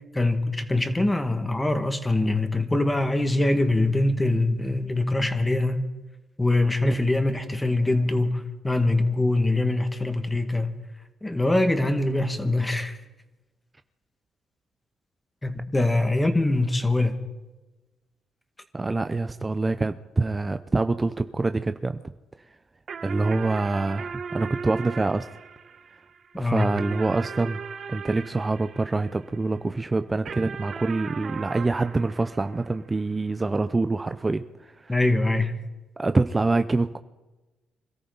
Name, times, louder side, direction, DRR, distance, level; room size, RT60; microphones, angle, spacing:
voice 1, 0.1-5.9 6.4-10.7 11.2-13.0 15.4-17.2 26.4-26.7 34.9-35.5, left 2 dB, 15° left, 7 dB, 1.9 m, -23 dB
voice 2, 18.7-22.0 23.0-25.3 26.4-27.6 27.9-35.0 36.0-37.0, right 3 dB, 20° right, 10 dB, 0.6 m, -25 dB
sound 1, 22.9-29.6 30.3-33.1, right 6 dB, 55° right, 1.3 m, -38 dB
26.0 x 13.5 x 4.0 m, 1.1 s
cardioid pair, 90°, 0 cm